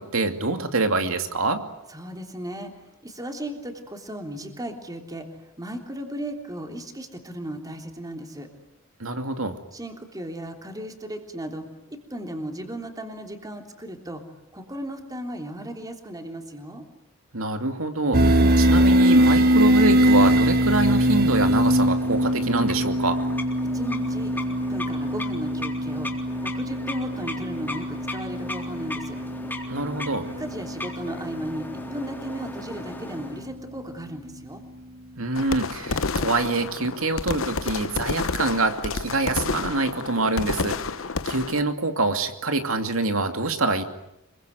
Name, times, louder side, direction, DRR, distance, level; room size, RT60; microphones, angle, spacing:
voice 1, 0.0-1.6 9.0-9.6 17.3-23.2 29.7-30.3 35.2-40.8 41.3-43.8, right 3 dB, 75° right, 7 dB, 2.7 m, -25 dB
voice 2, 1.9-2.7 3.0-5.3 5.6-8.5 9.7-14.2 14.5-16.8 23.7-24.4 24.7-29.2 30.4-34.6, right 1 dB, 20° right, 4 dB, 3.4 m, -36 dB
sound 1, 18.1-33.2, equal, 50° right, 1.4 m, -22 dB
sound 2, 21.7-33.5, left 2 dB, 10° left, 3.8 m, -38 dB
sound 3, 35.4-41.6, left 4 dB, 70° left, 1.0 m, -29 dB
26.0 x 23.5 x 9.4 m, 0.84 s
head